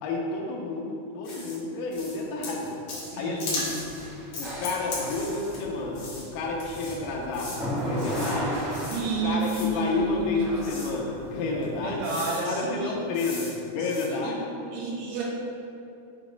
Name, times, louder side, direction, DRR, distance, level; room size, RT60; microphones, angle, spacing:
voice 1, 0.0-2.7 3.2-3.7 4.4-8.6 9.2-12.1 12.4-14.5, left 3 dB, 80° left, -2 dB, 2.0 m, -30 dB
sound 1, 1.2-1.5 1.9-2.2 2.4-3.1 3.4-3.9 4.3-5.6 5.9-6.2 6.6-6.9 7.3-7.6 8.0-8.4 8.7-9.0 9.4-9.7 10.6-10.9 11.6-11.7 12.0-12.4 13.1-13.5 13.8-14.0, left 2 dB, 60° left, 1.7 m, -37 dB
voice 2, 3.0-3.8 8.7-10.5 11.6-12.9 13.8-14.3 14.7-15.2, right 2 dB, 85° right, -4 dB, 2.9 m, -31 dB
sound 2, 3.6-11.9, equal, 50° right, 1.2 m, -35 dB
6.1 x 3.0 x 5.1 m, 2.6 s
omnidirectional pair, 4.5 m